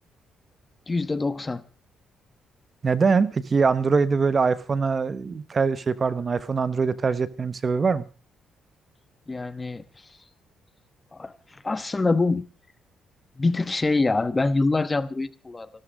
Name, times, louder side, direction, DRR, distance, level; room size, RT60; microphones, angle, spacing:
voice 1, 0.9-1.6 9.3-9.8 11.1-12.5 13.4-15.7, left 3 dB, 25° left, 1.1 m, -25 dB
voice 2, 2.8-8.0, right 5 dB, 35° right, 1.2 m, -23 dB
16.5 x 12.5 x 5.2 m
cardioid pair, 90°, 0 cm